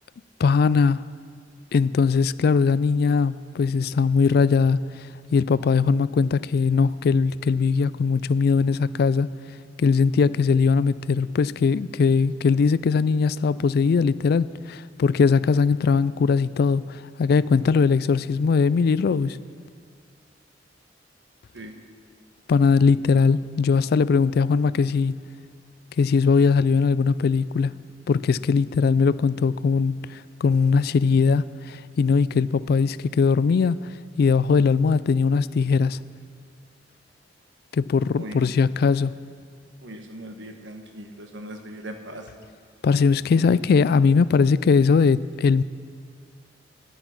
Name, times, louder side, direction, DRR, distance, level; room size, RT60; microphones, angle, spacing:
voice 1, 0.4-1.1 1.7-4.9 5.3-9.3 9.8-19.4 22.5-25.2 26.0-27.8 28.1-30.1 30.4-33.8 34.2-36.0 37.7-39.2 42.8-45.6, left 5 dB, 55° left, 0.3 m, -20 dB
voice 2, 39.8-42.3, right 1 dB, 75° right, 1.3 m, -39 dB
13.0 x 10.5 x 5.9 m
head